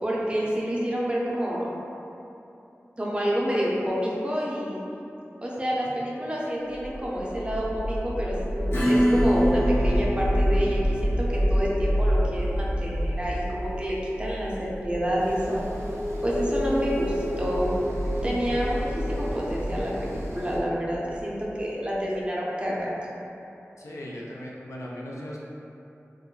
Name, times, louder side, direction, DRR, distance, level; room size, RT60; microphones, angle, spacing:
voice 1, 0.0-1.7 3.0-4.8 5.4-15.7 16.2-17.7 18.2-23.0, equal, 20° right, -5 dB, 0.5 m, -28 dB
sound 1, 6.7-21.8, equal, 20° left, 0.6 m, -28 dB
Acoustic guitar / Strum, 8.7-15.9, equal, 65° left, 0.8 m, -29 dB
sound 2, 15.2-20.6, equal, 70° right, 0.5 m, -42 dB
voice 2, 23.8-25.4, equal, 90° left, -4 dB, 0.4 m, -38 dB
2.3 x 2.1 x 3.7 m, 2.8 s
wide cardioid pair, 65°, 5 cm